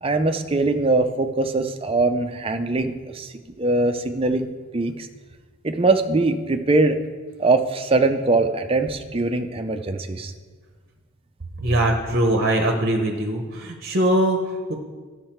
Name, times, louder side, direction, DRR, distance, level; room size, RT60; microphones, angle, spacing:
voice 1, 0.0-4.5 4.7-5.1 5.6-7.0 7.4-10.3, right 3 dB, 25° right, 7 dB, 0.5 m, -22 dB
voice 2, 11.6-14.7, right 1 dB, 45° right, 3 dB, 0.8 m, -21 dB
12.0 x 6.5 x 4.5 m, 1.4 s
head